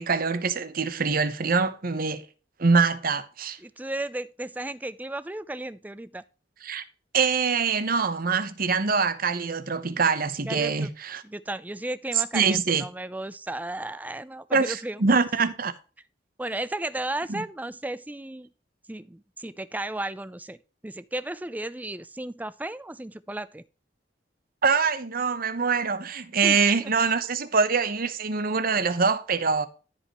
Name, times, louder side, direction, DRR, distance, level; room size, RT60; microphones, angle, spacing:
voice 1, 0.0-2.2 2.6-3.6 6.6-6.8 7.1-11.2 12.1-12.8 14.5-15.7 17.3-17.4 24.6-29.7, right 5 dB, 50° right, 0.9 m, -24 dB
voice 2, 3.6-6.2 10.5-10.9 11.2-15.0 16.4-18.5 18.9-20.6 20.8-23.6 26.4-26.9, right 1 dB, 10° right, 0.4 m, -34 dB
13.5 x 5.2 x 3.0 m
head